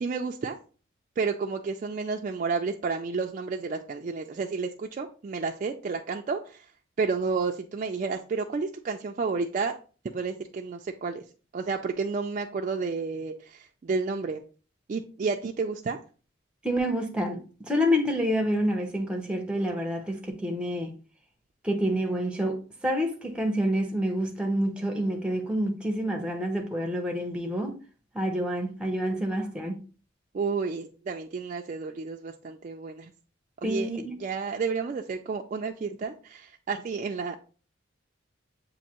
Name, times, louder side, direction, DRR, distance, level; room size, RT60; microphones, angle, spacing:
voice 1, 0.0-0.6 1.2-6.7 7.0-9.8 10.1-11.2 11.5-14.4 14.9-16.0 30.3-33.1 33.6-33.9 34.2-37.4, right 4 dB, 40° right, 0.3 m, -31 dB
voice 2, 16.6-17.4 17.7-20.9 21.6-22.6 22.8-27.7 28.1-29.8 33.6-34.2, equal, 5° right, 0.6 m, -28 dB
7.2 x 2.6 x 2.8 m
head